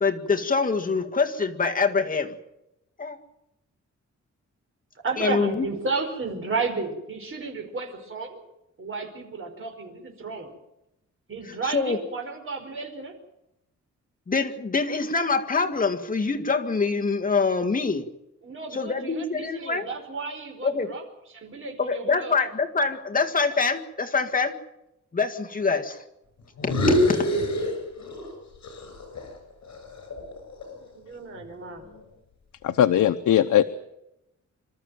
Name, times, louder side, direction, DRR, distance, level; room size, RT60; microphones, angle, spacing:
voice 1, 0.0-2.3 3.0-3.2 5.2-5.7 11.6-12.0 14.3-18.0 18.7-19.9 20.6-20.9 21.8-24.6 25.1-26.0 26.6-27.2, left 4 dB, 30° left, 3 dB, 1.9 m, -25 dB
voice 2, 5.0-8.4 8.8-10.5 11.3-13.1 18.4-21.0 21.3-22.4 30.9-31.8, right 4 dB, 45° right, 3 dB, 5.0 m, -33 dB
sound 1, 26.6-28.3 28.6-30.9, left 1 dB, 65° left, 7.1 m, -26 dB
voice 3, 32.6-33.7, left 11 dB, 85° left, 8 dB, 0.9 m, -19 dB
26.0 x 13.5 x 9.1 m, 0.88 s
wide cardioid pair, 150°, 29 cm